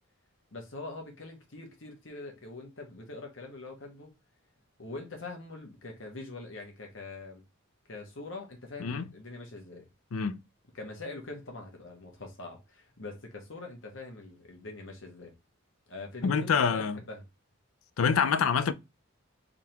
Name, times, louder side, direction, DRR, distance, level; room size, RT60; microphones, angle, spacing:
voice 1, 0.5-4.1 4.8-7.4 7.9-9.9 10.7-15.3 15.9-17.2, left 2 dB, 65° left, 1.3 m, -43 dB
voice 2, 16.2-17.0 18.0-18.7, left 6 dB, 85° left, 0.4 m, -26 dB
3.7 x 3.5 x 2.8 m
head